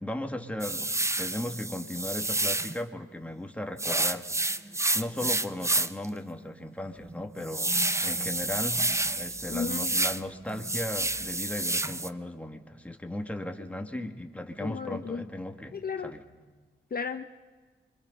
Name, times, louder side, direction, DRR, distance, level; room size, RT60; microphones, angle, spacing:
voice 1, 0.0-4.3 4.9-15.8 16.0-16.2, left 1 dB, 5° left, 4 dB, 2.0 m, -36 dB
sound 1, 0.6-2.8 3.8-6.0 6.5-6.6 7.0-10.2 10.5-12.1, right 2 dB, 15° right, 0.7 m, -29 dB
voice 2, 9.5-9.9 13.9-14.1 14.6-15.3 15.7-16.1 16.9-17.2, left 5 dB, 50° left, 7 dB, 0.8 m, -34 dB
25.5 x 24.0 x 5.4 m, 1.4 s
cardioid pair, 60°, 20 cm